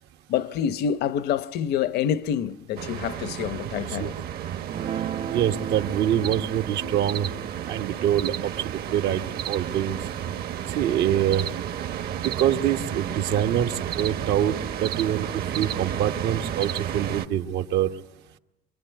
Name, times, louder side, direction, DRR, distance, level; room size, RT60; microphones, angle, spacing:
voice 1, 0.3-4.1, left 9 dB, 75° left, 0.9 m, -27 dB
sound 1, 2.8-17.3, right 10 dB, 65° right, 1.3 m, -32 dB
Guitar, 4.7-11.3, right 8 dB, 50° right, 1.0 m, -38 dB
voice 2, 5.3-7.3 7.7-10.0 10.7-11.5 12.2-17.9, right 10 dB, 85° right, 1.4 m, -25 dB
25.5 x 21.5 x 9.3 m
cardioid pair, 110°, 17 cm